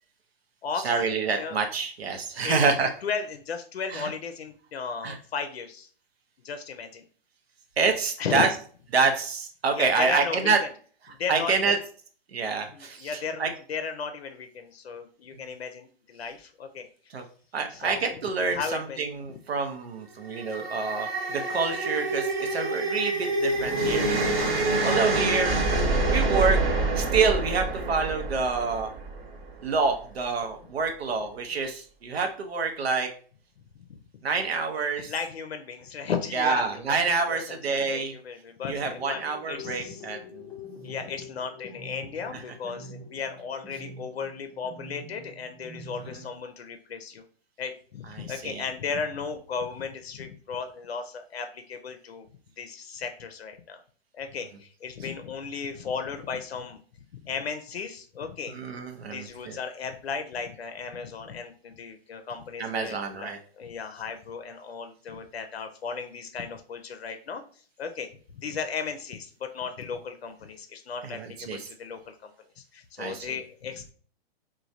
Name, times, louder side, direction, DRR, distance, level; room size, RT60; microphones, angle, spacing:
voice 1, 0.8-2.9 3.9-4.1 5.0-5.2 7.8-8.5 8.9-10.6 11.3-11.8 12.3-13.1 13.4-13.5 17.1-17.2 17.5-26.6 27.0-28.9 29.6-33.1 34.2-35.1 36.3-38.1 38.7-40.2 48.2-48.6 58.5-59.6 62.6-63.4 71.0-71.6 73.0-73.3, right 4 dB, 85° right, 4 dB, 0.7 m, -27 dB
voice 2, 3.0-5.9 6.4-7.1 8.2-8.5 9.7-10.7 11.1-11.8 12.7-16.9 17.7-18.1 18.5-19.1 33.9-34.0 34.8-39.2 39.5-40.1 40.8-47.2 47.6-52.3 52.6-53.8 54.1-56.8 57.1-58.5 59.1-73.9, left 5 dB, 85° left, 7 dB, 0.5 m, -35 dB
sound 1, 20.2-29.5, right 2 dB, 50° right, 1.0 m, -27 dB
sound 2, 38.9-46.3, left 2 dB, 10° left, 0.5 m, -45 dB
3.1 x 2.2 x 2.6 m, 0.43 s
hypercardioid pair, 120°, 30 cm